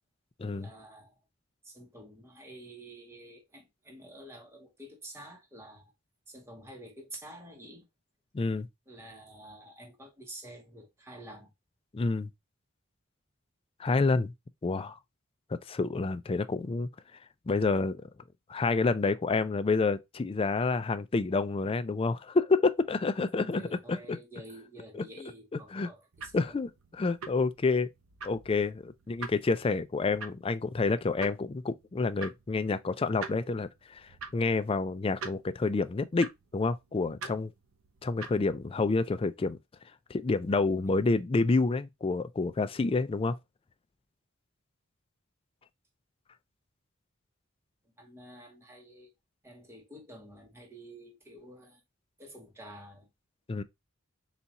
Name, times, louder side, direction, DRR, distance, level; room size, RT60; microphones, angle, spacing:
voice 1, 0.5-1.2 1.6-5.9 6.3-7.8 8.9-11.5 23.5-26.6 40.9-41.0 47.8-49.1 49.4-51.8 52.2-53.1, right 1 dB, 10° right, 0.9 m, -49 dB
voice 2, 8.3-8.7 11.9-12.3 13.8-14.3 14.6-15.0 15.7-16.9 17.5-18.0 18.5-24.2 24.9-25.0 25.7-25.9 26.3-27.9 28.2-34.1 34.3-37.5 38.0-39.6 40.1-43.4 53.5-53.6, left 3 dB, 25° left, 0.4 m, -28 dB
sound 1, 26.1-38.7, right 4 dB, 75° right, 0.7 m, -47 dB
4.1 x 2.4 x 4.0 m
head